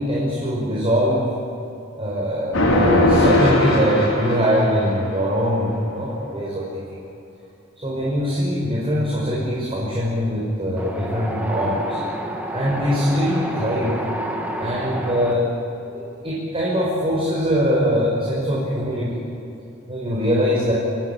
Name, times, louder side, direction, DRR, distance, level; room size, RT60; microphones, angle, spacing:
voice 1, 0.0-1.3 2.0-7.0 7.8-12.0 12.5-14.0 14.6-15.5 15.9-19.2 19.9-20.7, equal, 30° right, -5 dB, 5.7 m, -22 dB
sound 1, 2.5-4.9, left 1 dB, 90° left, 5.5 m, -19 dB
Wind, 10.8-15.3, right 1 dB, 10° right, 3.0 m, -29 dB
29.5 x 17.5 x 8.8 m, 2.7 s
head